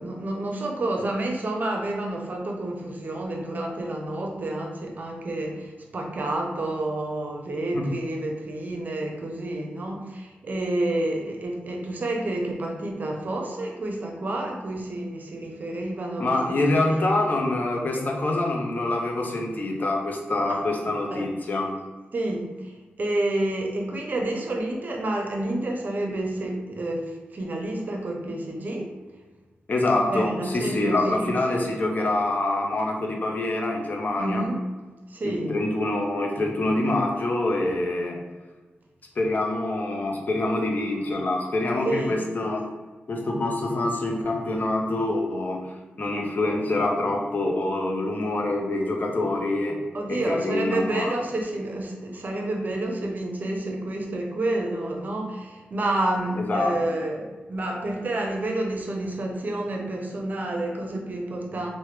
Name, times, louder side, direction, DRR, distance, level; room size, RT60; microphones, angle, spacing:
voice 1, 0.0-17.0 20.5-20.6 21.1-21.3 22.1-28.9 30.1-31.3 31.5-31.6 34.2-34.5 35.1-35.6 41.8-42.2 49.9-61.7, right 1 dB, 50° right, 1 dB, 0.6 m, -29 dB
voice 2, 16.2-21.7 29.7-34.4 35.2-38.2 39.2-42.7 43.1-45.7 46.0-49.8 50.1-51.1 56.4-56.7, left 2 dB, 50° left, 1 dB, 0.6 m, -25 dB
3.1 x 2.1 x 3.1 m, 1.2 s
cardioid pair, 70°, 4 cm